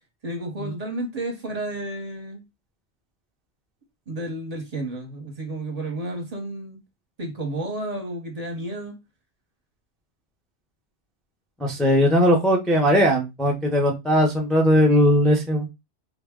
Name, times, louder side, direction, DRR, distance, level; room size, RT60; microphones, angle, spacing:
voice 1, 0.2-2.4 4.1-6.8 7.2-9.0, right 1 dB, 40° right, 0.8 m, -31 dB
voice 2, 11.6-15.7, equal, ahead, 0.3 m, -19 dB
3.6 x 2.0 x 3.5 m
omnidirectional pair, 1.2 m